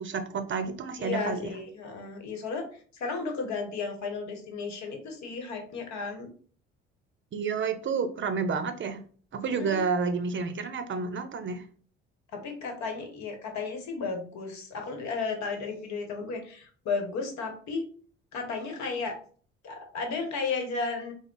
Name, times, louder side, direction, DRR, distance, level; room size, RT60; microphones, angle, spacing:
voice 1, 0.0-1.5 7.3-9.0 9.3-11.7, right 5 dB, 35° right, 8 dB, 0.6 m, -30 dB
voice 2, 1.0-2.7 2.9-6.3 9.4-9.8 12.3-17.8 18.3-19.2 19.6-21.1, left 4 dB, 60° left, 4 dB, 1.1 m, -34 dB
3.5 x 2.1 x 3.7 m, 0.44 s
hypercardioid pair, 60°, 32 cm